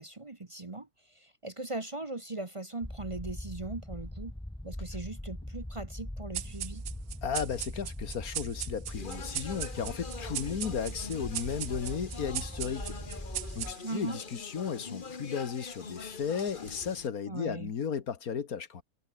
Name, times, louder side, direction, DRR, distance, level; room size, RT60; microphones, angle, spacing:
voice 1, 0.0-4.3 4.6-6.8 13.8-14.2 17.3-17.7, right 2 dB, 25° right, 1.0 m, -39 dB
sound 1, 2.8-13.7, left 1 dB, 5° left, 0.5 m, -41 dB
sound 2, 6.3-14.1, right 12 dB, 85° right, 1.2 m, -40 dB
voice 2, 7.2-13.2 13.6-18.8, left 7 dB, 90° left, 2.0 m, -35 dB
Speech, 8.9-17.1, left 4 dB, 35° left, 1.6 m, -44 dB
omnidirectional pair, 1.5 m